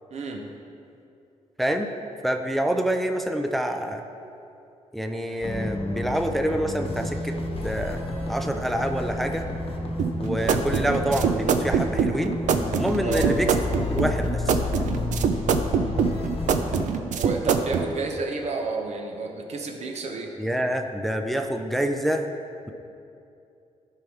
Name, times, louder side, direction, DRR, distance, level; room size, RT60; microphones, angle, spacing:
voice 1, 0.1-0.5 13.0-13.3 17.1-20.4, right 3 dB, 60° right, 2 dB, 1.0 m, -30 dB
voice 2, 1.6-1.9 2.2-4.0 4.9-7.4 7.6-8.0 8.3-9.5 10.2-12.4 12.8-13.5 13.9-14.6 20.4-22.3, right 1 dB, ahead, 5 dB, 0.5 m, -26 dB
sound 1, 5.4-16.9, left 2 dB, 45° left, 1.0 m, -31 dB
sound 2, 10.0-17.9, right 6 dB, 75° right, 0.5 m, -24 dB
12.5 x 5.6 x 3.5 m, 2.7 s
cardioid pair, 105°, 13 cm